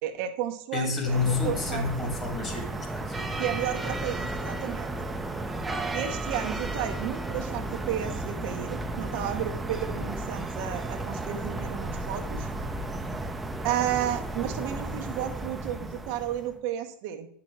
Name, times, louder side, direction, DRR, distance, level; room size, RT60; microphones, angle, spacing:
voice 1, 0.0-1.9 3.4-4.9 5.9-12.5 13.6-17.3, right 11 dB, 65° right, 6 dB, 0.7 m, -32 dB
voice 2, 0.7-3.5, left 4 dB, 30° left, 2 dB, 2.1 m, -30 dB
sound 1, 1.0-16.5, right 2 dB, 10° right, 0.6 m, -33 dB
9.5 x 6.0 x 3.0 m, 0.65 s
hypercardioid pair, 95°, 0 cm